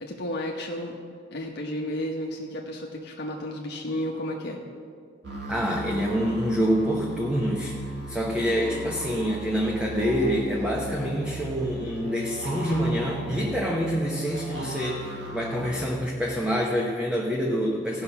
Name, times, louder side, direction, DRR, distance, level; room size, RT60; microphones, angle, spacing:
voice 1, 0.0-1.0 1.3-4.6, left 1 dB, 60° left, 0 dB, 0.9 m, -32 dB
sound 1, 5.2-15.7, right 1 dB, 65° right, 2.2 m, -37 dB
voice 2, 5.5-7.8 8.1-18.0, equal, 5° right, -1 dB, 0.8 m, -26 dB
16.0 x 5.6 x 5.8 m, 2.2 s
head